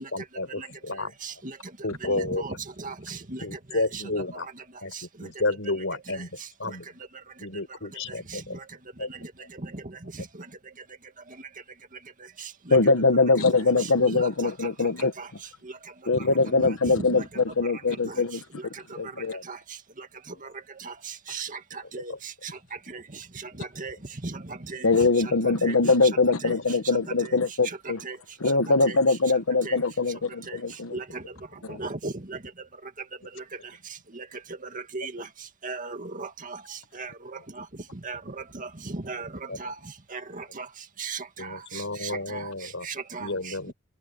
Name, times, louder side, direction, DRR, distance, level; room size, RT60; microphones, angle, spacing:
voice 1, 0.1-1.2 1.8-2.4 3.4-4.5 4.8-6.9 7.4-8.6 9.0-9.1 19.3-19.4 22.1-22.2 39.5-39.6 41.4-42.9 43.2-43.7, left 2 dB, 65° left, 6.1 m, -31 dB
voice 2, 2.1-3.4 3.7-4.0 13.5-13.6 14.0-14.2 15.2-15.3 16.6-17.2 18.1-18.2 19.5-19.6 20.9-21.0 21.3-21.5 21.9-22.1 22.9-23.0 23.6-24.0 24.2-24.4 24.7-24.9 25.6-25.8 26.4-26.5 28.0-28.2 28.8-29.0 29.6-29.8 30.5-30.6 30.9-31.2 31.8-32.4 34.2-34.3 34.9-35.2 35.6-36.6 37.0-37.1 38.0-38.2 38.5-39.3 39.6-39.7 40.1-40.7 41.0-42.4 42.8-43.7, right 3 dB, 40° right, 2.1 m, -36 dB
voice 3, 12.7-15.1 16.1-18.4 19.0-19.3 24.8-28.0 28.4-31.0 31.6-31.8, left 3 dB, 80° left, 1.1 m, -22 dB
head